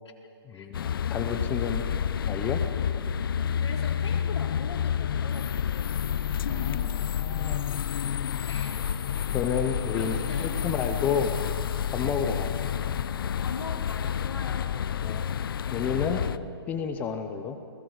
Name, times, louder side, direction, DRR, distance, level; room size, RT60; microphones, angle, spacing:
voice 1, 0.4-1.8 2.3-2.6 6.5-6.8 7.1-7.8 9.3-11.4 11.9-12.6 15.0-15.3 15.7-16.2 16.7-17.6, left 6 dB, 10° left, 7 dB, 0.7 m, -30 dB
sound 1, 0.7-16.4, left 8 dB, 50° left, 0.6 m, -29 dB
voice 2, 3.3-7.0 8.4-9.3 9.9-10.6 13.4-14.7, left 4 dB, 80° left, -1 dB, 4.1 m, -42 dB
30.0 x 20.0 x 5.0 m, 2.6 s
hypercardioid pair, 165°, 14 cm